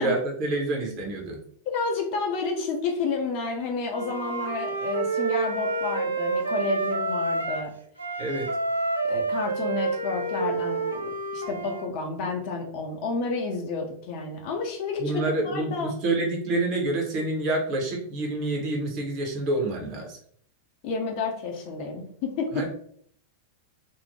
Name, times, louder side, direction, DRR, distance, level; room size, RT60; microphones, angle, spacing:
voice 1, 0.0-1.4 8.2-8.5 15.0-20.2 22.5-22.7, right 2 dB, 40° right, 1 dB, 0.8 m, -27 dB
voice 2, 1.7-7.7 9.0-15.9 20.8-22.7, left 4 dB, 45° left, 1 dB, 0.5 m, -30 dB
Wind instrument woodwind instrument, 3.9-7.7 8.0-11.8, right 3 dB, 80° right, 0.3 m, -28 dB
2.6 x 2.0 x 3.0 m, 0.62 s
figure-of-eight pair, 90°, 0 cm